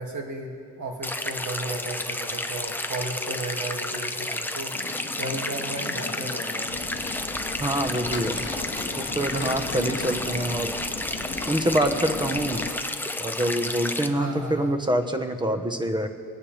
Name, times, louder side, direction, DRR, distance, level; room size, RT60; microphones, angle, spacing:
voice 1, 0.0-6.7 10.3-10.6 14.0-14.8, right 2 dB, 50° right, 1 dB, 2.4 m, -35 dB
sound 1, 1.0-14.1, left 2 dB, 5° left, 0.7 m, -31 dB
sound 2, 4.7-12.7, left 5 dB, 30° left, 1.1 m, -36 dB
sound 3, 6.7-12.7, right 3 dB, 65° right, 1.4 m, -44 dB
voice 2, 7.6-8.5 9.0-10.7 11.5-12.6 13.2-16.1, right 1 dB, 10° right, 6 dB, 1.1 m, -26 dB
24.0 x 9.6 x 3.4 m, 2.1 s
cardioid pair, 90°, 38 cm